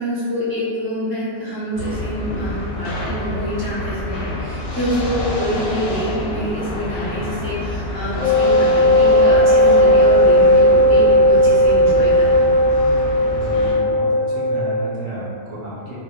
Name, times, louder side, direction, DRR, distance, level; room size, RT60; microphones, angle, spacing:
voice 1, 0.0-12.3, equal, 15° left, -11 dB, 0.4 m, -26 dB
sound 1, 1.7-13.7, left 1 dB, 60° left, 0.6 m, -28 dB
Wind instrument woodwind instrument, 8.2-14.8, equal, 85° left, 0.9 m, -15 dB
voice 2, 13.3-16.0, equal, 50° right, -10 dB, 0.7 m, -32 dB
2.1 x 2.1 x 3.0 m, 2.3 s
omnidirectional pair, 1.3 m